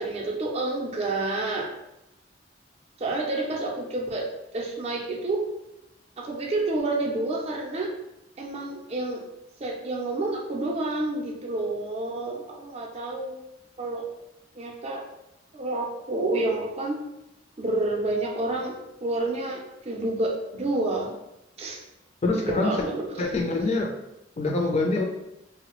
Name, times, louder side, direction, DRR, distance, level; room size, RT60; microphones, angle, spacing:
voice 1, 0.0-1.7 3.0-4.3 4.5-5.4 6.2-7.9 8.4-9.2 9.6-13.4 13.8-14.0 14.6-15.0 15.5-17.0 17.6-21.2 21.6-21.8 22.4-23.3, right 2 dB, 35° right, 0 dB, 0.5 m, -29 dB
voice 2, 22.2-22.9 23.2-23.9 24.4-25.0, left 2 dB, 35° left, 1 dB, 0.4 m, -25 dB
3.1 x 2.0 x 2.9 m, 0.87 s
head